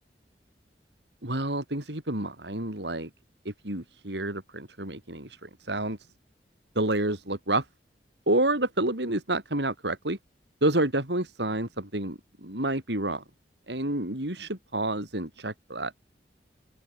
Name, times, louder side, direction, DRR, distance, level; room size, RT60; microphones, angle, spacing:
voice 1, 1.2-3.1 3.5-6.0 6.8-7.7 8.3-10.2 10.6-13.2 13.7-15.9, right 1 dB, 75° right, 5.2 m, -29 dB
open air
head